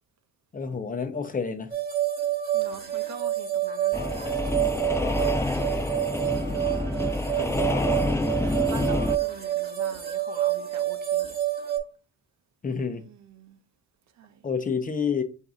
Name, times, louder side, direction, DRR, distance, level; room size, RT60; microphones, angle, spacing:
voice 1, 0.5-1.7 12.6-13.1 14.4-15.2, left 6 dB, 25° left, 0.8 m, -28 dB
sound 1, 1.7-11.8, right 12 dB, 30° right, 1.5 m, -28 dB
voice 2, 2.5-4.0 5.4-5.7 6.2-7.7 8.4-11.4 12.9-13.6 14.2-14.4, right 7 dB, 65° right, 0.7 m, -44 dB
sound 2, 3.9-9.2, left 2 dB, 10° left, 0.4 m, -27 dB
4.7 x 2.7 x 3.6 m
cardioid pair, 90°, 30 cm